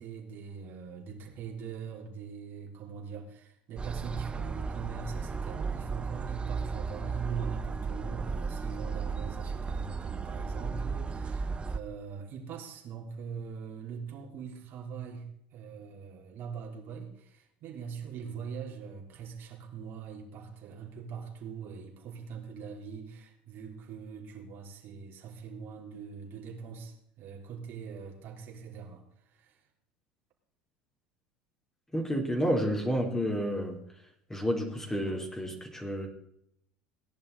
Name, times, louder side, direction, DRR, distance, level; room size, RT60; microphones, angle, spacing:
voice 1, 0.0-29.6, right 6 dB, 50° right, 0 dB, 3.6 m, -42 dB
sound 1, 3.8-11.8, right 5 dB, 20° right, 0.9 m, -35 dB
voice 2, 31.9-33.8 34.3-36.1, equal, 10° left, 1 dB, 3.5 m, -30 dB
18.0 x 10.5 x 4.0 m, 0.74 s
hypercardioid pair, 75°, 5 cm